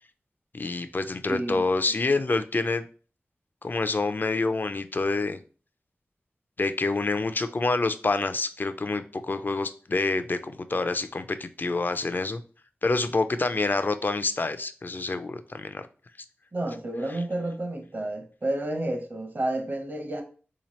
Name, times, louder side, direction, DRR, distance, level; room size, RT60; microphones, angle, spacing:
voice 1, 0.5-2.8 3.6-5.4 6.6-12.4 12.8-15.9, left 3 dB, 50° left, 0.4 m, -27 dB
voice 2, 1.3-1.6 16.5-20.2, right 1 dB, 50° right, 0.8 m, -30 dB
3.5 x 2.8 x 3.1 m
cardioid pair, 50°, 4 cm